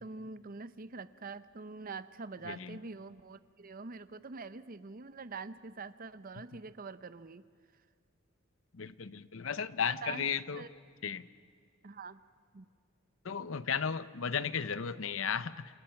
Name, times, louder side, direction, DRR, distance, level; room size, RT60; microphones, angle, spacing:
voice 1, 0.0-7.4 10.0-10.3 10.6-10.7 11.8-12.2 12.5-12.7, right 4 dB, 45° right, 14 dB, 0.7 m, -45 dB
voice 2, 2.4-2.8 8.7-10.6 11.0-11.2 13.2-15.8, left 6 dB, 70° left, 14 dB, 0.7 m, -35 dB
27.5 x 27.0 x 5.8 m, 2.1 s
head